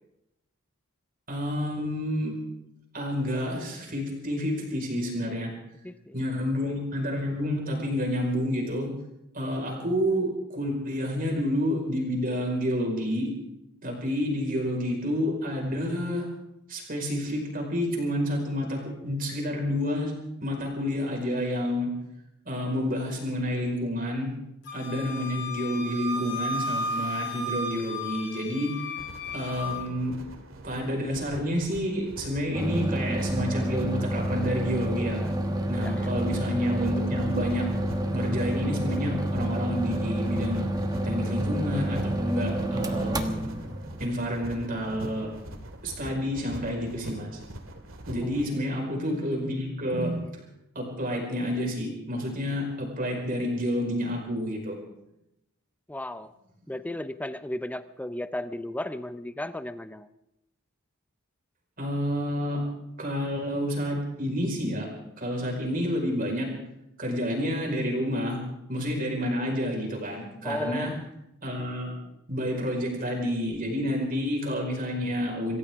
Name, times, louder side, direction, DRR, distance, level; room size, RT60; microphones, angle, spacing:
voice 1, 1.3-2.3 2.9-5.5 6.1-8.9 9.3-13.3 13.8-16.3 16.7-20.1 20.4-21.9 22.4-24.3 24.7-28.7 29.3-30.1 30.6-35.2 35.7-37.7 38.1-40.7 41.0-43.4 44.0-45.3 45.8-47.4 48.1-50.2 50.7-54.7 61.8-62.6 63.0-64.9 65.2-66.5 67.0-68.4 68.7-70.9 71.4-71.9 72.3-75.6, equal, 40° right, 1 dB, 5.0 m, -29 dB
voice 2, 5.8-6.2 35.8-36.1 48.2-48.6 55.9-56.3 56.7-60.1 70.4-71.0, left 1 dB, 5° left, 12 dB, 0.6 m, -35 dB
Wind instrument woodwind instrument, 24.7-29.9, left 1 dB, 55° left, 2.8 m, -34 dB
sound 1, 29.0-48.5, right 1 dB, 70° right, 2.2 m, -42 dB
sound 2, 32.5-45.1, right 1 dB, 20° right, 1.2 m, -29 dB
26.0 x 15.0 x 3.7 m, 0.85 s
head